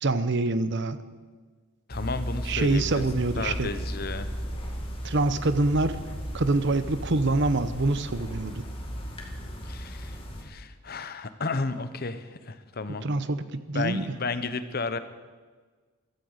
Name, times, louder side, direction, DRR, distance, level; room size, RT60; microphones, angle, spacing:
voice 1, 0.0-1.0 2.5-3.7 5.0-6.0 6.3-8.6 13.0-14.0, right 2 dB, 50° right, 12 dB, 0.8 m, -25 dB
voice 2, 1.9-3.0 3.4-4.3 9.6-13.0 13.7-15.0, left 3 dB, 45° left, 11 dB, 0.8 m, -33 dB
sound 1, 1.9-10.4, equal, 25° left, 2.1 m, -35 dB
15.0 x 13.0 x 6.5 m, 1.4 s
head